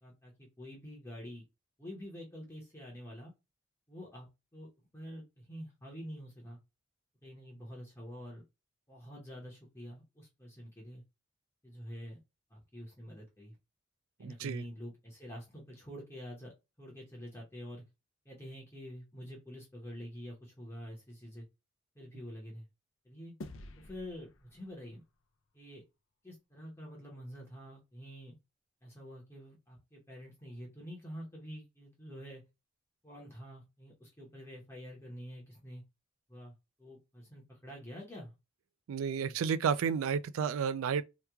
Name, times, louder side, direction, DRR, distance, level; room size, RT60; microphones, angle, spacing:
voice 1, 0.0-1.4 1.8-3.3 3.9-4.3 4.5-6.6 7.2-8.4 8.9-11.0 11.6-12.2 12.5-13.6 14.2-17.8 18.2-21.5 21.9-22.7 23.0-23.3 23.8-25.0 25.5-25.8 26.2-28.4 28.8-32.4 33.0-35.8 36.3-38.4 39.2-39.3, equal, 15° left, 0.8 m, -47 dB
voice 2, 14.2-14.6 38.9-41.0, right 7 dB, 90° right, 0.3 m, -31 dB
sound 1, 23.4-26.0, left 2 dB, 65° left, 0.5 m, -51 dB
3.0 x 2.3 x 3.4 m
head